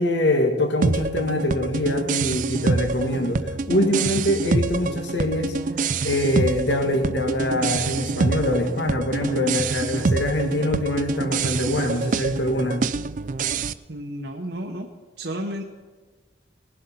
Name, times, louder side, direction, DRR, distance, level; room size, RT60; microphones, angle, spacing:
voice 1, 0.0-5.6 6.0-12.8, left 1 dB, 80° left, 5 dB, 1.6 m, -24 dB
sound 1, 0.8-13.7, right 4 dB, 45° right, 0.4 m, -26 dB
sound 2, 6.9-9.5 10.4-12.0, right 1 dB, 15° right, 1.0 m, -42 dB
voice 2, 13.9-14.9 15.2-15.6, equal, 70° right, 2 dB, 1.0 m, -31 dB
19.0 x 7.8 x 5.7 m, 1.4 s
head